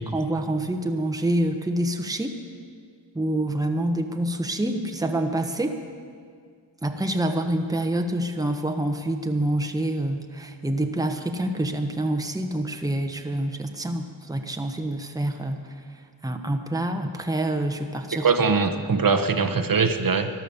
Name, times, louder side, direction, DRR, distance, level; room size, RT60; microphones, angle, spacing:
voice 1, 0.1-2.4 3.1-5.8 6.8-18.5, right 1 dB, 10° right, 5 dB, 1.1 m, -27 dB
voice 2, 18.2-20.3, right 5 dB, 50° right, 8 dB, 1.1 m, -21 dB
13.5 x 11.0 x 7.0 m, 2.1 s
cardioid pair, 65°, 43 cm